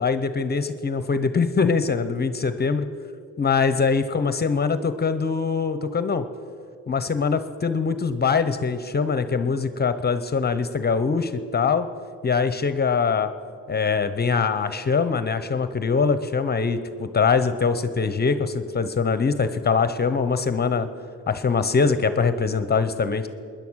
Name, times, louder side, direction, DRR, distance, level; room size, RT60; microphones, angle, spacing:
voice 1, 0.0-2.9 3.4-6.2 6.9-11.9 12.2-13.3 13.7-20.9 21.3-23.3, left 5 dB, 30° left, 11 dB, 0.9 m, -23 dB
19.5 x 10.5 x 6.4 m, 2.3 s
cardioid pair, 90°, 30 cm